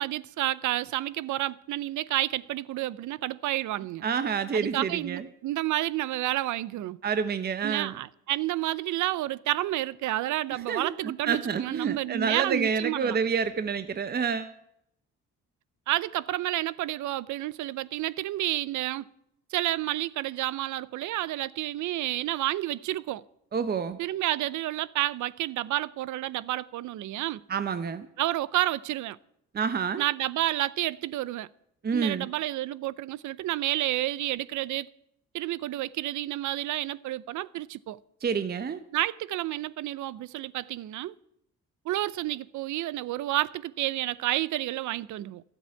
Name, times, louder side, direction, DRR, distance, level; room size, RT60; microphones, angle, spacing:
voice 1, 0.0-4.1 4.5-7.0 7.6-13.2 15.9-19.1 19.5-23.2 24.0-27.4 28.2-29.2 30.0-31.5 31.9-34.9 35.3-38.0 38.9-41.1 41.9-45.4, right 15 dB, 75° right, 0.6 m, -30 dB
voice 2, 4.0-5.3 7.0-8.0 10.5-14.5 23.5-24.0 27.5-28.1 29.5-30.0 31.8-32.3 38.2-38.8, right 6 dB, 30° right, 0.7 m, -28 dB
13.0 x 7.9 x 8.4 m
cardioid pair, 90°, 30 cm